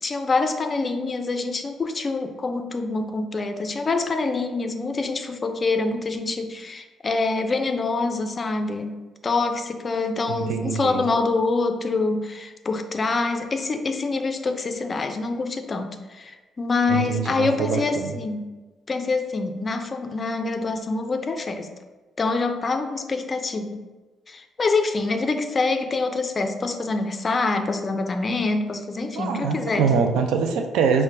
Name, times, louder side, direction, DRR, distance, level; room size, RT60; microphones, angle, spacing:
voice 1, 0.0-18.5 18.9-21.7 22.2-23.9 24.3-29.9, left 3 dB, 35° left, 7 dB, 0.3 m, -25 dB
voice 2, 10.3-11.0 16.9-18.1 29.2-31.0, right 6 dB, 90° right, 5 dB, 0.3 m, -24 dB
4.4 x 2.1 x 3.2 m, 1.2 s
cardioid pair, 90°, 0 cm